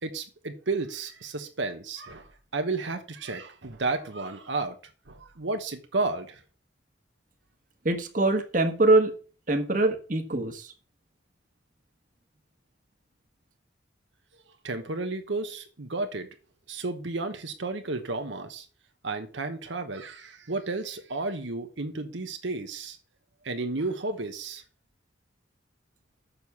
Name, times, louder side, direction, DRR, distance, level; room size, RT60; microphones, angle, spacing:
voice 1, 0.0-4.8 5.1-6.4 14.6-16.3 16.7-18.7 19.0-23.0 23.4-24.6, right 3 dB, 75° right, 1.2 m, -32 dB
voice 2, 7.8-9.1 9.5-10.7, right 2 dB, 45° right, 1.3 m, -23 dB
6.9 x 6.3 x 7.0 m
head